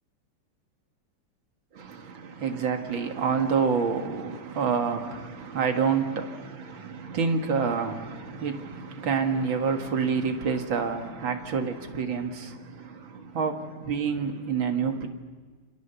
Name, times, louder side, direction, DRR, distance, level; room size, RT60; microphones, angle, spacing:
voice 1, 1.7-15.1, right 5 dB, 85° right, 2.6 m, -28 dB
29.5 x 26.5 x 7.0 m
omnidirectional pair, 2.1 m